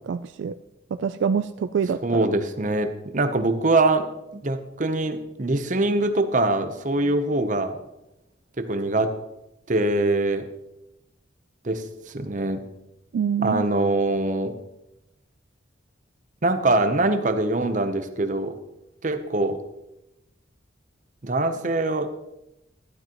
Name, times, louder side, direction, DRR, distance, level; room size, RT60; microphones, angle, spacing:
voice 1, 0.1-0.6 0.9-2.0 13.1-13.7, right 7 dB, 75° right, 12 dB, 0.3 m, -25 dB
voice 2, 2.0-4.1 4.3-7.8 8.6-9.1 9.7-10.5 11.6-11.8 12.1-12.6 13.4-14.5 16.4-18.6 19.0-19.6 21.2-22.1, right 2 dB, 40° right, 9 dB, 0.7 m, -23 dB
12.0 x 12.0 x 3.0 m, 0.91 s
head